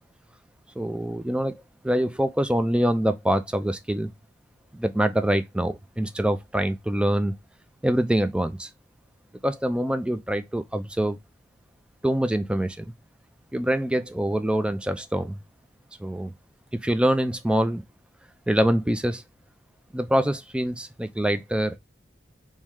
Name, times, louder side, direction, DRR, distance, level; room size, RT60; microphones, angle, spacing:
voice 1, 0.8-4.1 4.7-7.3 7.8-8.7 9.4-11.2 12.0-12.9 13.5-15.4 16.0-16.3 16.8-17.8 18.5-19.2 19.9-21.8, right 1 dB, 5° right, 0.4 m, -25 dB
3.2 x 3.1 x 3.5 m
head